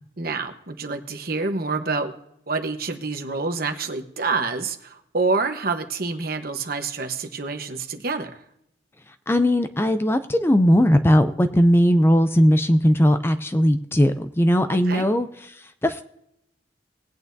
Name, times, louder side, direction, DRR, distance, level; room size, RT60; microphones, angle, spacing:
voice 1, 0.2-2.1 2.5-8.4 14.9-15.1, right 4 dB, 50° right, 6 dB, 1.1 m, -27 dB
voice 2, 9.1-16.0, equal, 10° left, 10 dB, 0.4 m, -19 dB
19.5 x 8.8 x 2.7 m, 0.77 s
head